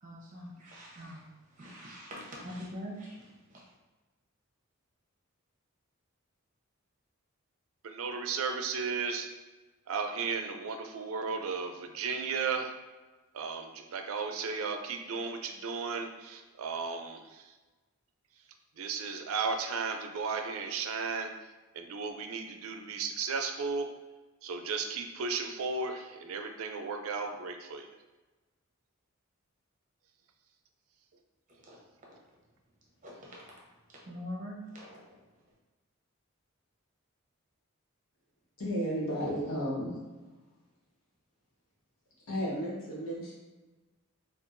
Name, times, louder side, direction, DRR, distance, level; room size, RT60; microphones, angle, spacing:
voice 1, 0.0-1.2 1.6-3.6 31.7-31.8 32.0-32.1 33.0-33.6 34.1-35.0, equal, 35° right, -3 dB, 0.8 m, -44 dB
voice 2, 7.8-9.3 9.9-12.7 13.3-17.5 18.8-21.3 21.7-23.9 24.4-27.9, right 5 dB, 80° right, 5 dB, 0.4 m, -35 dB
voice 3, 38.6-40.0 42.3-43.3, equal, 80° left, -5 dB, 1.2 m, -33 dB
4.4 x 2.4 x 2.5 m, 1.2 s
head